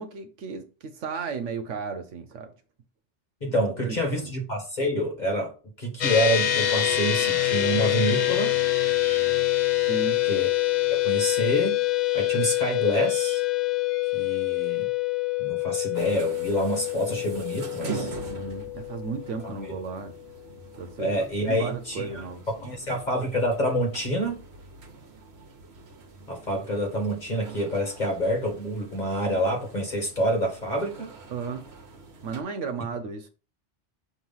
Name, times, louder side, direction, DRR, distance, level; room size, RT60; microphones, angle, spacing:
voice 1, 0.0-2.5 3.4-3.6 3.8-4.3 9.8-10.2 18.2-20.2 20.8-21.1 21.4-22.4 31.3-31.7 32.2-33.3, right 5 dB, 80° right, 1.2 m, -34 dB
voice 2, 3.4-5.5 5.8-8.6 10.3-10.5 10.9-11.8 12.1-13.4 14.1-14.9 15.4-18.1 19.4-19.8 21.0-22.1 22.5-24.4 26.3-31.1, equal, 35° left, 2.0 m, -27 dB
sound 1, 6.0-19.6, left 15 dB, 55° left, 0.5 m, -25 dB
Wind instrument woodwind instrument, 8.1-14.0, left 7 dB, 85° left, 1.4 m, -43 dB
sound 2, 15.9-32.4, right 4 dB, 65° right, 1.3 m, -43 dB
6.4 x 3.1 x 5.5 m
omnidirectional pair, 1.2 m